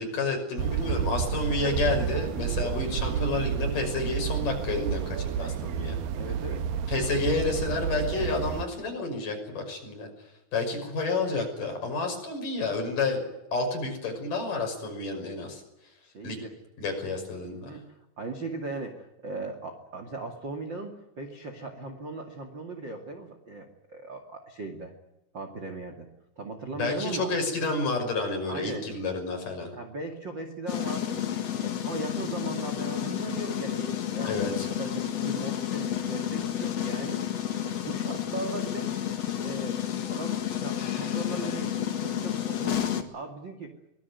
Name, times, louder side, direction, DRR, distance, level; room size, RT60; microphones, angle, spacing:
voice 1, 0.0-6.0 6.9-10.1 10.5-13.2 13.5-15.6 16.2-16.4 16.8-17.7 26.7-29.7 34.2-34.7, left 3 dB, 40° left, 3 dB, 7.1 m, -30 dB
sound 1, 0.6-8.6, right 8 dB, 80° right, 2.0 m, -30 dB
voice 2, 6.1-7.1 16.0-16.5 17.5-24.9 25.3-26.1 26.3-27.3 28.4-28.9 29.7-31.2 31.5-38.9 39.4-39.8 40.1-43.7, right 3 dB, 40° right, 5 dB, 1.6 m, -38 dB
sound 2, 30.7-43.0, left 10 dB, 55° left, 1.8 m, -31 dB
24.5 x 21.0 x 9.5 m, 0.92 s
omnidirectional pair, 5.9 m